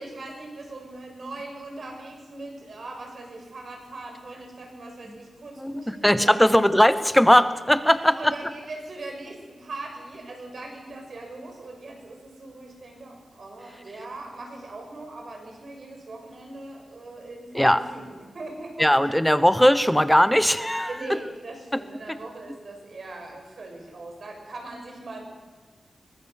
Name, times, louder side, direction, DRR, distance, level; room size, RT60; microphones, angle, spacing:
voice 1, 0.0-6.6 7.7-19.2 20.6-25.3, right 2 dB, 60° right, 2 dB, 5.9 m, -40 dB
voice 2, 5.6-8.3 17.5-17.8 18.8-21.2 21.7-21.8 22.1-22.2, equal, 5° left, 12 dB, 1.1 m, -19 dB
22.5 x 20.0 x 6.7 m, 1.4 s
wide cardioid pair, 100°, 0 cm